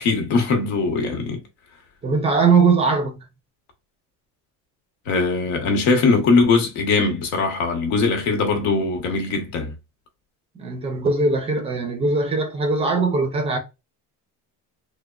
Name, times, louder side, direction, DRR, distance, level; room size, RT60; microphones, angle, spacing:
voice 1, 0.0-1.4 5.1-9.7, left 4 dB, 80° left, 1.1 m, -21 dB
voice 2, 2.0-3.3 10.6-13.6, right 4 dB, 20° right, 0.4 m, -20 dB
3.4 x 2.1 x 2.3 m
cardioid pair, 170°, 34 cm